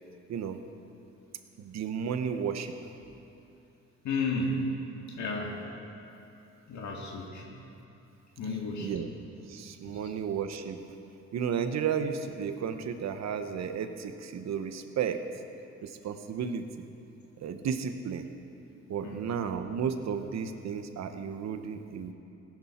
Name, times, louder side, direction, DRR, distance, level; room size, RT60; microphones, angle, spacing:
voice 1, 1.6-2.7 8.8-9.1 9.5-10.8 11.3-15.2 15.8-16.8 17.4-18.3 18.9-22.1, right 7 dB, 65° right, 8 dB, 1.0 m, -33 dB
voice 2, 4.0-4.7 5.1-5.6 6.7-7.6 8.4-9.0 9.8-10.1 19.0-19.2, left 3 dB, 70° left, -1 dB, 2.0 m, -33 dB
17.0 x 10.5 x 4.3 m, 2.8 s
cardioid pair, 90°, 30 cm